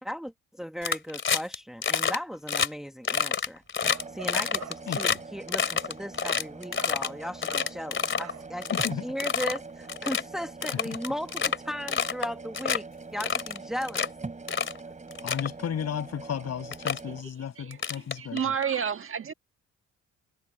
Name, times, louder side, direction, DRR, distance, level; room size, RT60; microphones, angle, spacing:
voice 1, 0.0-3.6 4.1-8.8 9.0-14.0, equal, ahead, 1.4 m, -36 dB
sound 1, 0.8-1.6 1.8-2.2 2.5-2.7 3.0-5.2 5.5-7.1 7.4-8.3 8.6-8.9 9.2-9.6 9.9-10.2 10.6-11.6 11.9-12.3 12.5-12.8 13.2-14.1 14.5-14.8 15.1-15.5 16.3-16.4 16.7-17.0 17.7-18.6, left 6 dB, 40° left, 2.7 m, -28 dB
sound 2, 3.5-3.6 3.8-17.2, right 3 dB, 25° right, 5.2 m, -43 dB
Bark, 3.8-5.2 6.2-6.5 6.7-7.0 7.5-7.8 8.2-8.5, right 10 dB, 65° right, 4.4 m, -44 dB
voice 2, 4.9-5.2 8.7-9.0 10.8-10.9 15.2-18.5, left 8 dB, 55° left, 7.7 m, -34 dB
voice 3, 18.2-19.3, right 7 dB, 45° right, 1.5 m, -30 dB
cardioid pair, 90°, 30 cm